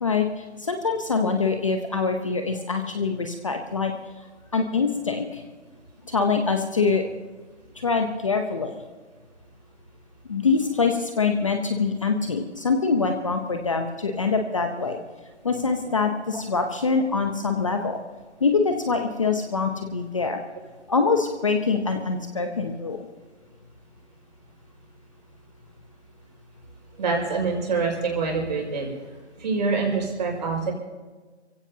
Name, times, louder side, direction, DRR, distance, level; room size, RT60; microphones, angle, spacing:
voice 1, 0.0-3.9 4.5-5.4 6.1-7.0 7.8-8.7 10.3-15.0 15.4-18.0 18.4-20.4 20.9-23.1, left 4 dB, 30° left, 5 dB, 0.8 m, -24 dB
voice 2, 27.0-28.9 29.4-30.7, right 4 dB, 40° right, 0 dB, 5.4 m, -25 dB
26.0 x 16.0 x 2.8 m, 1.4 s
hypercardioid pair, 165°, 35 cm